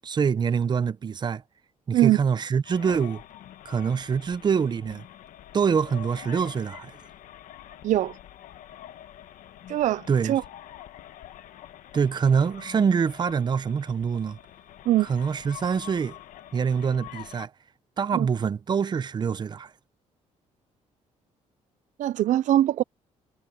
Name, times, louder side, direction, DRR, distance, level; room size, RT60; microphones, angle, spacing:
voice 1, 0.0-1.4 1.9-3.2 3.6-5.0 5.5-7.0 10.1-10.4 11.9-14.4 15.0-16.2 16.5-17.5 18.0-19.7, right 6 dB, 35° right, 0.7 m, -25 dB
sound 1, 2.6-17.5, left 12 dB, 80° left, 1.3 m, -46 dB
voice 2, 7.8-8.2 9.7-10.4 14.9-15.1 18.1-18.3 22.0-22.8, right 13 dB, 70° right, 0.5 m, -22 dB
cardioid pair, 115°, 13 cm